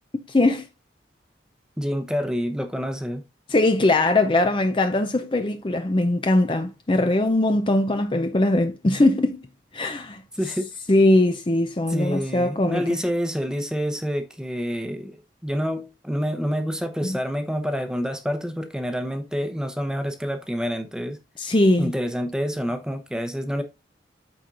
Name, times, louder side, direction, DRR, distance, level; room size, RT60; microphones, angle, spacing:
voice 1, 0.3-0.6 3.5-9.4 9.7-10.2 10.9-12.8 21.4-21.9, left 2 dB, 25° left, 0.5 m, -20 dB
voice 2, 1.8-3.2 10.3-10.7 11.9-21.2 21.8-23.6, equal, 5° right, 0.9 m, -27 dB
13.0 x 4.4 x 2.6 m
head